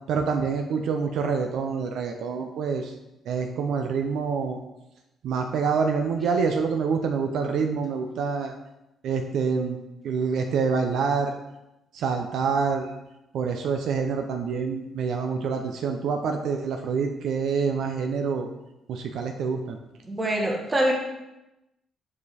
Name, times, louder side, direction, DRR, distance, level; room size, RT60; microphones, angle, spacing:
voice 1, 0.1-2.9 3.3-4.6 5.2-8.5 9.0-9.8 10.0-11.3 11.9-12.9 13.3-18.5 18.9-19.8, right 5 dB, 75° right, 4 dB, 0.6 m, -26 dB
voice 2, 20.0-20.9, right 1 dB, 20° right, 0 dB, 1.8 m, -24 dB
6.9 x 5.0 x 4.2 m, 0.93 s
cardioid pair, 90°, 0 cm